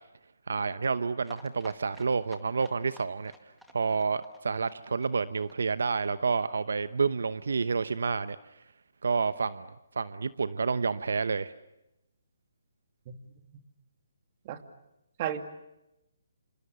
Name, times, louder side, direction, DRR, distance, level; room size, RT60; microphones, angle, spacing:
voice 1, 0.5-3.3 3.7-8.4 9.0-9.7 10.0-11.5, right 5 dB, 75° right, 14 dB, 0.9 m, -29 dB
sound 1, 1.2-6.8 7.1-7.2 7.4-7.5 7.7-7.8, equal, ahead, 1.9 m, -54 dB
voice 2, 13.1-13.6 14.4-14.6 15.2-15.4, right 10 dB, 35° right, 7 dB, 2.4 m, -35 dB
28.5 x 27.5 x 6.9 m, 0.91 s
hypercardioid pair, 155°, 0 cm